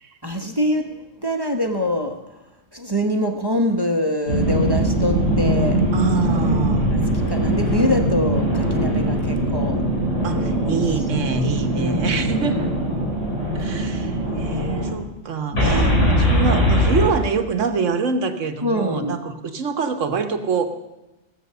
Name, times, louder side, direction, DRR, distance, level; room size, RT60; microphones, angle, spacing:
voice 1, 0.2-2.2 2.7-5.8 7.3-9.8 10.6-10.8 11.7-12.2 15.6-16.3 18.6-19.2, left 1 dB, 20° right, 4 dB, 0.9 m, -24 dB
sound 1, 4.3-14.9 15.5-17.1, equal, 75° left, 3.8 m, -21 dB
voice 2, 5.9-7.0 10.2-12.7 13.5-20.7, right 5 dB, 85° right, 7 dB, 1.4 m, -25 dB
16.5 x 7.6 x 6.7 m, 1.0 s
omnidirectional pair, 1.3 m